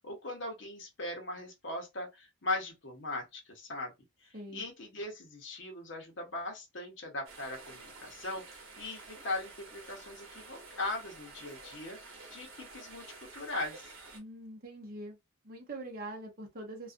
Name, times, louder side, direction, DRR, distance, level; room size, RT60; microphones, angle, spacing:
voice 1, 0.0-3.9 4.2-13.9, left 2 dB, 55° left, 0.8 m, -39 dB
voice 2, 4.3-4.7 14.1-15.2 15.4-16.9, right 1 dB, 40° right, 0.7 m, -43 dB
sound 1, 7.2-14.2, right 3 dB, 70° right, 0.9 m, -50 dB
2.4 x 2.3 x 2.4 m
head